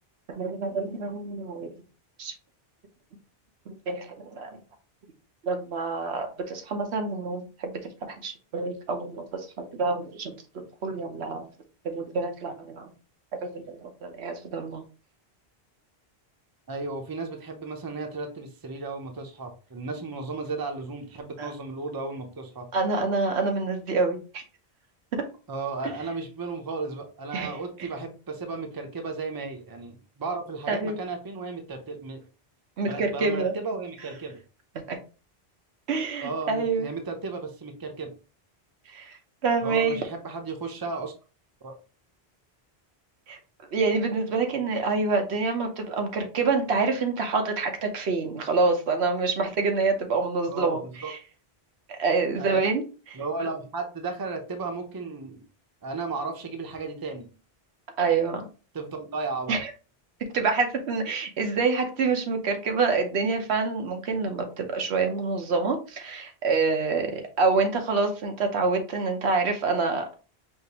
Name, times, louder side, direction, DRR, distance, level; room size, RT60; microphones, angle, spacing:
voice 1, 0.3-1.7 2.2-2.3 3.7-4.6 5.4-11.4 11.8-12.9 13.4-14.8 21.4-21.5 22.7-24.4 25.1-25.2 27.3-27.9 30.7-31.0 32.8-33.5 34.9-35.0 35.9-36.9 38.9-40.0 43.3-43.4 43.7-51.2 51.9-53.2 58.0-58.5 59.5-59.7 60.3-70.1, right 4 dB, 90° right, 4 dB, 1.1 m, -27 dB
voice 2, 16.7-22.7 25.5-32.2 32.9-34.4 36.2-38.1 39.6-41.1 41.6-41.8 50.5-51.1 52.4-52.6 53.1-55.4 55.8-57.3 58.7-59.6, right 3 dB, 25° right, 4 dB, 0.6 m, -34 dB
5.1 x 2.5 x 2.9 m, 0.35 s
omnidirectional pair, 1.1 m